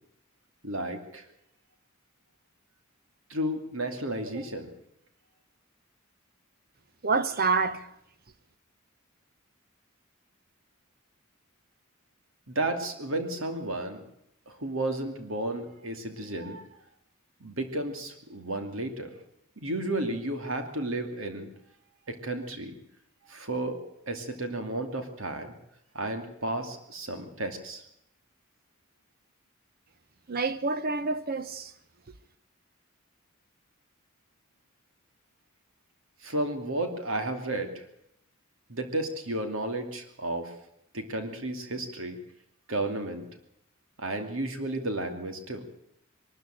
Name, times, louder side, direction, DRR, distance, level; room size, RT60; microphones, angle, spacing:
voice 1, 0.6-1.3 3.3-4.7 12.5-14.0 14.5-16.7 17.4-19.1 19.6-21.5 22.1-22.7 23.3-23.8 24.1-25.5 25.9-27.8 36.2-37.8 38.7-40.5 40.9-42.2 42.7-43.3 44.0-45.6, right 1 dB, 70° right, 2.6 m, -32 dB
voice 2, 7.0-7.9 30.3-31.7, right 4 dB, 45° right, 0.9 m, -27 dB
22.5 x 13.0 x 9.0 m
head